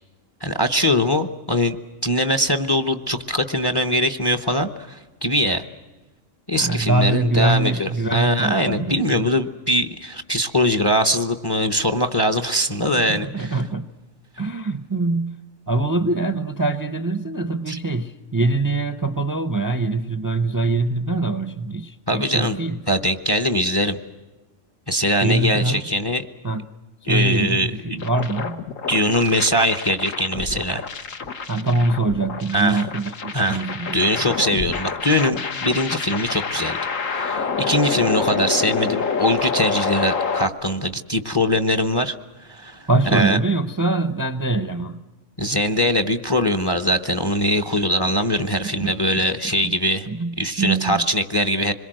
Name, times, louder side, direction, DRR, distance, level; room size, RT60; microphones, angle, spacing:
voice 1, 0.4-5.6 6.5-13.6 17.7-17.8 22.1-22.6 22.9-24.0 24.9-26.3 27.1-28.0 28.9-30.8 32.5-32.8 33.3-33.6 33.9-36.8 37.1-42.1 42.5-43.4 45.4-50.1 50.4-51.7, equal, 25° left, 10 dB, 0.7 m, -22 dB
voice 2, 6.6-9.3 12.8-13.9 14.4-15.4 15.7-22.8 25.2-25.8 26.4-26.7 27.1-28.6 31.5-34.4 42.9-45.0 48.6-49.8 50.1-51.0, right 2 dB, 20° right, 11 dB, 0.6 m, -24 dB
sound 1, 28.0-40.5, left 5 dB, 80° left, 1.6 m, -27 dB
26.0 x 22.0 x 7.7 m, 1.2 s
omnidirectional pair, 1.3 m